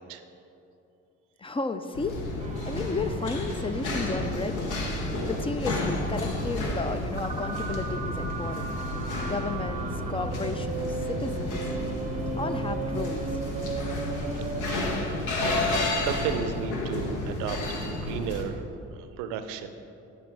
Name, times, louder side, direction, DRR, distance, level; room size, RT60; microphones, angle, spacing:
voice 1, 1.4-2.2 2.7-4.8 5.3-11.6 12.4-13.4 15.6-15.8, left 3 dB, 20° left, 10 dB, 0.3 m, -33 dB
sound 1, 1.9-18.4, left 2 dB, 75° left, 1.2 m, -31 dB
sound 2, 2.4-15.1, right 4 dB, 25° right, 0.6 m, -36 dB
voice 2, 14.4-15.0 16.0-19.7, right 7 dB, 90° right, 9 dB, 0.6 m, -34 dB
9.9 x 4.2 x 4.7 m, 2.8 s
supercardioid pair, 75°, 31 cm